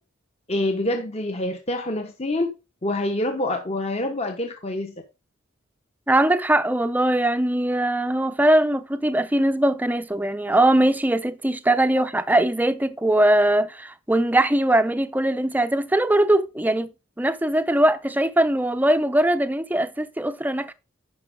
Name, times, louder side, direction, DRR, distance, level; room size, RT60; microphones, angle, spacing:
voice 1, 0.5-2.5 2.8-5.0 12.0-12.1, left 1 dB, 30° left, 1.0 m, -26 dB
voice 2, 6.1-16.9 17.2-20.7, right 1 dB, 10° right, 0.5 m, -21 dB
10.5 x 6.0 x 3.6 m
head